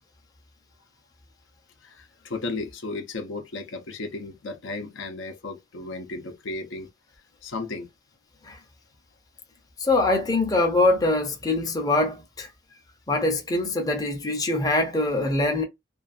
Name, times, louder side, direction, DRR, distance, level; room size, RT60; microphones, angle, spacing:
voice 1, 1.8-6.9 7.4-7.9, left 3 dB, 70° left, 0.6 m, -34 dB
voice 2, 9.8-12.5 13.1-15.6, left 2 dB, 20° left, 0.5 m, -23 dB
2.5 x 2.3 x 2.4 m
head